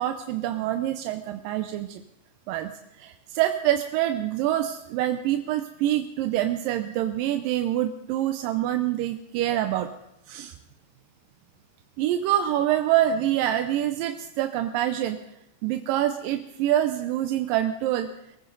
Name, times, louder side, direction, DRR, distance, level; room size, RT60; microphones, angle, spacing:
voice 1, 0.0-2.0 2.5-2.7 3.0-9.9 10.3-10.5 12.0-15.2 15.6-18.1, right 12 dB, 90° right, 7 dB, 2.4 m, -26 dB
23.0 x 14.5 x 3.9 m, 0.81 s
omnidirectional pair, 3.9 m